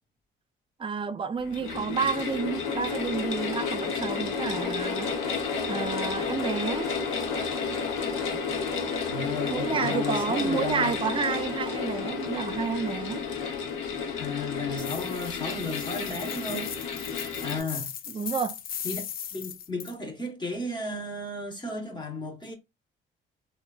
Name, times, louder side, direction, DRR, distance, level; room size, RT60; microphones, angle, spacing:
voice 1, 0.8-6.9 9.5-13.2 18.1-18.6, right 6 dB, 25° right, 0.4 m, -30 dB
sound 1, 1.4-17.6, left 5 dB, 85° left, 0.9 m, -31 dB
voice 2, 9.1-11.0 14.2-16.7 17.4-17.9 18.8-22.5, left 2 dB, 25° left, 0.8 m, -34 dB
sound 2, 14.8-19.9, left 9 dB, 50° left, 0.4 m, -38 dB
3.1 x 2.2 x 2.3 m
cardioid pair, 90°, 20 cm